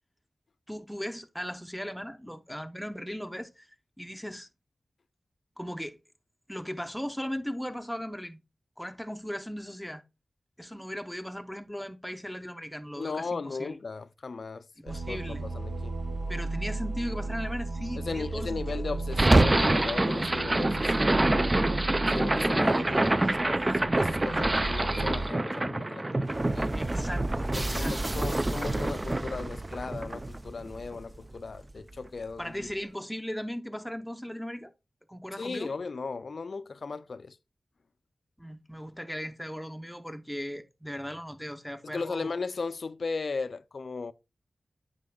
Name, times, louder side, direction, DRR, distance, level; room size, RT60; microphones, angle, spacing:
voice 1, 0.7-3.7 4.0-4.5 5.6-6.0 6.5-8.4 8.8-10.0 10.6-13.8 14.8-15.5 16.3-18.8 26.7-28.0 32.4-34.7 35.1-35.7 38.4-42.3, equal, ahead, 0.7 m, -37 dB
voice 2, 13.0-16.0 17.9-21.6 22.1-26.7 27.6-32.7 35.4-37.4 41.8-44.1, left 4 dB, 70° left, 0.3 m, -37 dB
sound 1, 14.9-25.3, right 2 dB, 80° right, 0.8 m, -35 dB
sound 2, 19.1-31.3, right 2 dB, 30° right, 0.4 m, -26 dB
8.1 x 5.2 x 2.2 m
cardioid pair, 45°, 0 cm